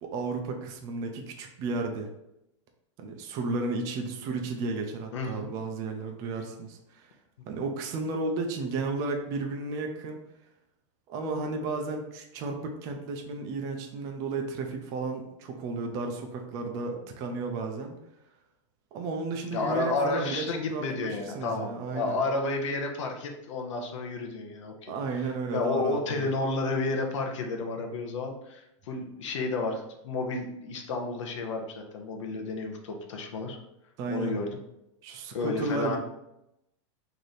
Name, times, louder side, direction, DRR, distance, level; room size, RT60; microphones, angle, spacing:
voice 1, 0.0-2.1 3.0-7.1 7.5-10.2 11.1-18.0 18.9-20.4 20.7-22.2 24.9-26.3 34.0-34.4 35.0-36.0, right 3 dB, 20° right, 3 dB, 0.3 m, -33 dB
voice 2, 5.1-5.5 19.5-33.6 34.1-34.5 35.3-36.0, left 3 dB, 70° left, 3 dB, 0.8 m, -31 dB
3.2 x 2.6 x 4.0 m, 0.86 s
supercardioid pair, 170°, 16 cm